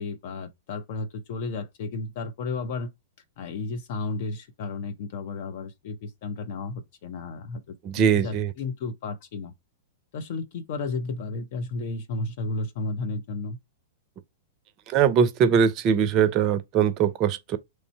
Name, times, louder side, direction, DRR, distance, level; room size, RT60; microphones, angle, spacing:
voice 1, 0.0-2.9 3.4-9.5 10.1-13.6, left 3 dB, 50° left, 0.9 m, -33 dB
voice 2, 7.8-8.5 14.9-17.6, right 7 dB, 35° right, 0.6 m, -21 dB
3.2 x 2.6 x 4.4 m
figure-of-eight pair, 100°, 0 cm